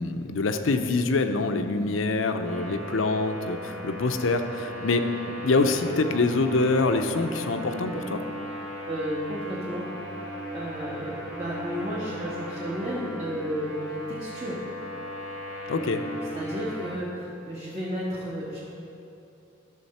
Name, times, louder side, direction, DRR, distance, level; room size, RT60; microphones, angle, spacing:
voice 1, 0.0-8.2 15.7-16.0, left 3 dB, 80° left, 7 dB, 0.6 m, -25 dB
sound 1, 2.4-17.0, equal, 5° right, 1.5 m, -37 dB
voice 2, 8.9-9.9 10.5-14.6 16.3-18.6, equal, 30° right, -8 dB, 1.5 m, -33 dB
13.0 x 6.6 x 4.3 m, 2.7 s
head